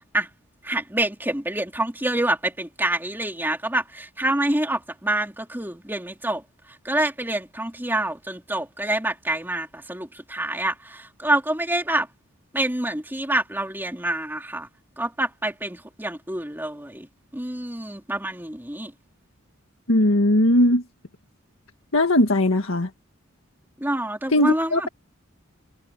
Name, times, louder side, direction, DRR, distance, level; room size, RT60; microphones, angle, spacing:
voice 1, 0.6-6.4 6.8-12.1 12.5-14.7 15.0-18.9 23.8-24.9, right 1 dB, 10° right, 3.3 m, -27 dB
voice 2, 19.9-20.8 21.9-22.9 24.3-24.9, left 1 dB, 80° left, 1.7 m, -19 dB
head